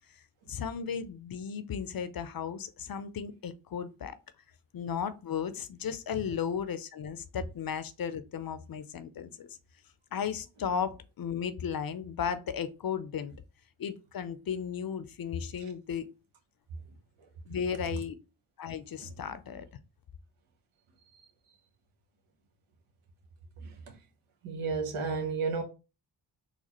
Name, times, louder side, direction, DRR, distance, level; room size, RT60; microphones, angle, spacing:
voice 1, 0.5-4.2 4.7-9.5 10.1-13.3 13.8-16.1 17.5-18.2 18.6-19.7, left 7 dB, 45° left, 0.6 m, -35 dB
voice 2, 24.4-25.6, right 4 dB, 80° right, 0.9 m, -31 dB
4.1 x 2.3 x 2.9 m
supercardioid pair, 40°, 49 cm